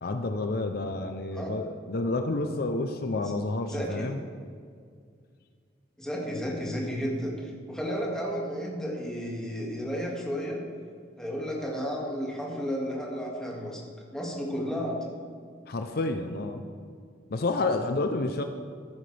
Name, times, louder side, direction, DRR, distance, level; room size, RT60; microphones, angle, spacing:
voice 1, 0.0-4.2 15.7-16.6 17.3-18.4, left 2 dB, 60° left, 6 dB, 0.6 m, -29 dB
voice 2, 3.7-4.1 6.0-10.6 11.2-13.8 14.1-15.2, equal, 5° left, -3 dB, 2.1 m, -32 dB
15.5 x 9.1 x 3.4 m, 2.1 s
head